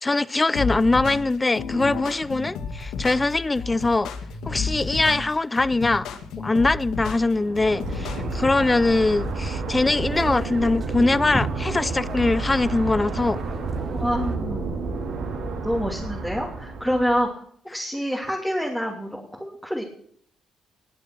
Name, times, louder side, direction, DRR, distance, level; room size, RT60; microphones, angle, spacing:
voice 1, 0.0-4.1 4.5-6.1 6.4-13.4, left 2 dB, 20° left, 0.5 m, -22 dB
sound 1, 0.5-8.5, left 5 dB, 85° left, 1.9 m, -32 dB
sound 2, 7.3-17.2, right 3 dB, 80° right, 4.3 m, -30 dB
sound 3, 7.8-14.4, right 5 dB, 45° right, 1.9 m, -41 dB
voice 2, 13.9-14.7 15.6-17.4 17.7-19.8, equal, ahead, 2.9 m, -27 dB
19.5 x 7.4 x 6.2 m
cardioid pair, 90°, 0 cm